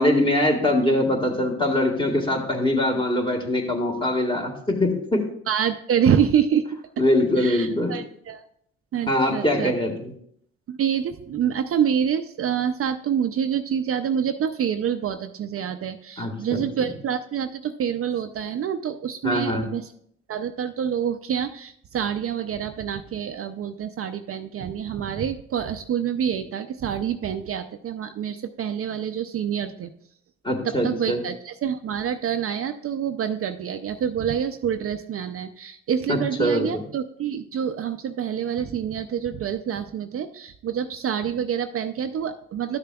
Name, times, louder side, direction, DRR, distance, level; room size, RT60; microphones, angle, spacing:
voice 1, 0.0-5.2 7.0-8.0 9.1-10.1 16.2-16.6 19.2-19.7 30.4-31.2 36.1-36.9, left 1 dB, 15° left, 2 dB, 1.7 m, -23 dB
voice 2, 5.5-6.7 7.4-8.4 8.9-9.7 10.7-19.9 20.3-29.9 30.6-42.8, right 8 dB, 50° right, 8 dB, 0.5 m, -27 dB
12.5 x 6.7 x 2.3 m, 0.67 s
cardioid pair, 90°, 30 cm